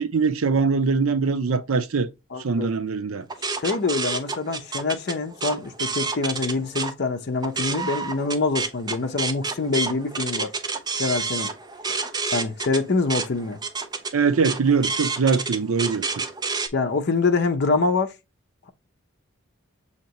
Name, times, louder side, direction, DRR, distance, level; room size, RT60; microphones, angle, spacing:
voice 1, 0.0-2.1 2.4-3.3 14.1-16.2, right 5 dB, 90° right, 0.6 m, -22 dB
voice 2, 2.3-2.7 3.6-10.5 11.0-11.5 11.9-12.0 12.3-13.6 16.7-18.1, left 3 dB, 55° left, 0.6 m, -25 dB
sound 1, 3.3-6.9 7.3-16.7, right 4 dB, 20° right, 0.5 m, -29 dB
6.5 x 2.9 x 2.8 m
head